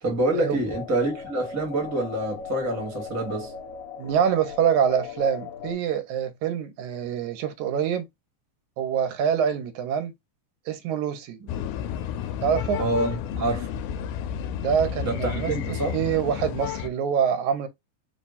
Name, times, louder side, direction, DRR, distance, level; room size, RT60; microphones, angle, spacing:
voice 1, 0.0-3.5 12.8-13.7 15.0-16.0, right 2 dB, 10° right, 0.9 m, -27 dB
sound 1, 0.7-5.7, left 6 dB, 65° left, 2.2 m, -38 dB
voice 2, 4.0-8.1 8.8-10.1 10.7-11.4 12.4-12.8 14.6-15.5 15.9-17.7, right 8 dB, 80° right, 2.2 m, -25 dB
sound 2, 11.5-16.9, left 9 dB, 90° left, 2.0 m, -31 dB
4.8 x 2.3 x 4.1 m
omnidirectional pair, 3.4 m